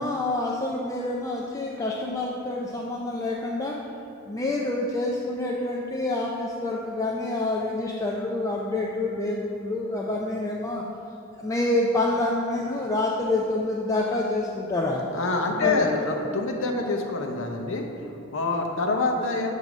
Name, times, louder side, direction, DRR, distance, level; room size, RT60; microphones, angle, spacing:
voice 1, 0.0-3.8 4.3-10.8 11.4-15.0 15.6-15.9, left 2 dB, 15° left, -2 dB, 0.4 m, -27 dB
voice 2, 15.1-19.5, left 3 dB, 70° left, 2 dB, 0.7 m, -26 dB
7.8 x 2.7 x 6.0 m, 2.8 s
head